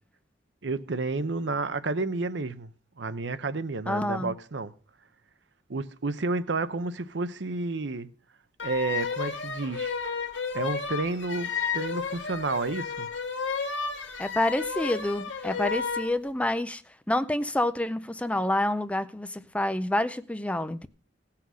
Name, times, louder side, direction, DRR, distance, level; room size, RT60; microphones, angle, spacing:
voice 1, 0.6-2.7 3.0-4.7 5.7-8.1 8.6-9.9 10.5-13.1, right 3 dB, 70° right, 0.7 m, -30 dB
voice 2, 3.9-4.3 14.2-16.8 17.1-20.9, left 1 dB, 5° left, 0.5 m, -28 dB
sound 1, 8.6-16.1, left 5 dB, 85° left, 1.8 m, -32 dB
17.0 x 5.8 x 6.2 m
head